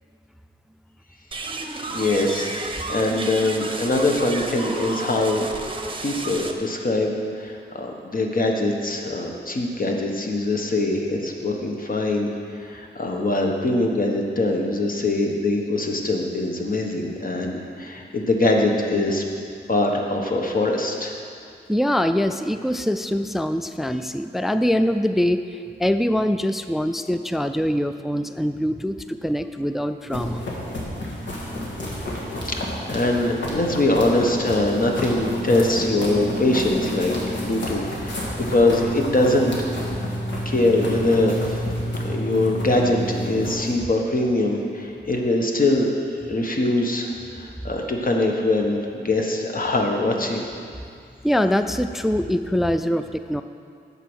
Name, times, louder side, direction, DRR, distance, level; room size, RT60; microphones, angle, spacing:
sound 1, 1.3-6.5, right 2 dB, 25° right, 0.8 m, -31 dB
voice 1, 1.9-2.5 2.9-5.4 6.0-19.2 19.7-21.2 32.4-39.5 40.4-41.6 42.0-45.9 46.3-50.5, left 2 dB, 50° left, 1 dB, 1.2 m, -23 dB
voice 2, 21.7-30.4 51.2-53.4, equal, ahead, 9 dB, 0.3 m, -23 dB
sound 2, 30.0-43.7, equal, 75° left, 1.9 m, -29 dB
8.2 x 6.8 x 6.2 m, 2.3 s
wide cardioid pair, 90°, 19 cm